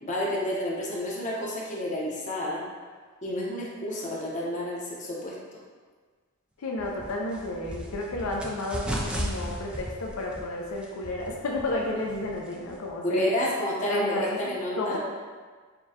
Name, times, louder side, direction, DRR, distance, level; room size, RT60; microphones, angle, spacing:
voice 1, 0.0-2.6 3.2-5.3 13.0-15.0, left 1 dB, 35° left, -4 dB, 0.8 m, -30 dB
voice 2, 6.6-13.3 13.8-15.0, left 2 dB, 80° left, -1 dB, 0.5 m, -32 dB
sound 1, 6.8-12.9, equal, 5° right, 0.4 m, -36 dB
6.6 x 2.2 x 2.8 m, 1.5 s
head